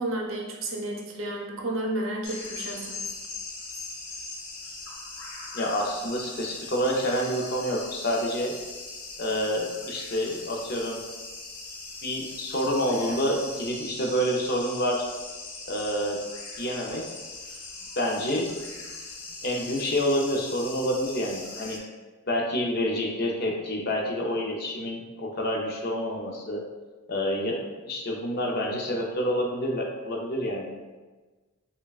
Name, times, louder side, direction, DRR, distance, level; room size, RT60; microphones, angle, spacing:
voice 1, 0.0-3.0, right 1 dB, 65° right, 0 dB, 0.6 m, -31 dB
sound 1, 2.2-21.8, left 3 dB, 90° left, 0.7 m, -40 dB
voice 2, 5.5-8.5 9.2-11.0 12.0-15.1 15.6-16.2 16.6-17.0 18.0-18.5 19.4-21.8 22.3-26.6 27.1-30.9, equal, 45° left, 0 dB, 0.5 m, -28 dB
5.4 x 2.2 x 2.3 m, 1.3 s
head